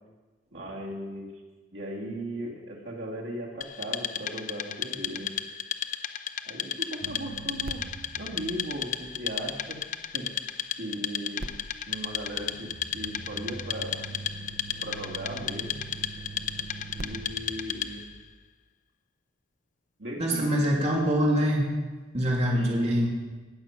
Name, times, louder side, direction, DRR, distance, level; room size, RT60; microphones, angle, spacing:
voice 1, 0.5-1.3 1.7-5.3 6.4-7.8 8.2-9.8 10.1-10.3 10.8-11.5 11.8-14.0 14.8-15.8 16.9-18.0 20.0-20.9 22.5-23.1, right 1 dB, 80° right, -2 dB, 2.7 m, -37 dB
Wood, 3.6-18.1, left 9 dB, 45° left, 0.6 m, -34 dB
sound 1, 7.0-10.2 11.4-18.3, right 2 dB, 55° right, 0.8 m, -43 dB
voice 2, 20.2-21.7 22.1-23.1, equal, 35° right, -2 dB, 2.3 m, -24 dB
18.5 x 7.4 x 6.0 m, 1.3 s
head